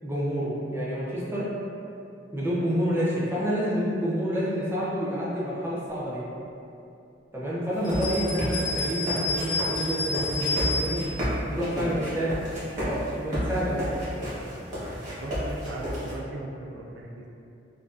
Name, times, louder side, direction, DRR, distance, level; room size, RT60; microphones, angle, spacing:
voice 1, 0.0-1.5 2.3-6.3 7.3-11.1 11.5-12.3 12.8-13.8, equal, 15° right, -8 dB, 0.5 m, -28 dB
sound 1, 7.7-16.1, equal, 45° right, 0.9 m, -32 dB
sound 2, 7.8-11.2, left 2 dB, 80° left, 0.6 m, -30 dB
voice 2, 15.1-17.3, right 2 dB, 80° right, -1 dB, 0.3 m, -38 dB
2.5 x 2.3 x 2.3 m, 2.7 s
head